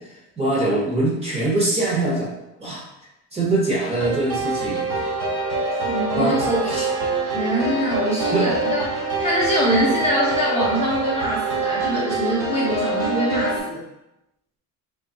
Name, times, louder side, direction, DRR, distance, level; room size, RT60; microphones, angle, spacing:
voice 1, 0.4-2.3 2.6-2.8 3.3-4.9 6.1-6.9 8.3-8.5, right 2 dB, 15° right, -5 dB, 0.9 m, -22 dB
sound 1, 4.0-13.6, right 3 dB, 45° right, 1.2 m, -25 dB
voice 2, 5.8-6.7 7.2-13.8, equal, 15° left, -8 dB, 0.7 m, -24 dB
3.2 x 2.3 x 3.8 m, 0.91 s
cardioid pair, 155°, 39 cm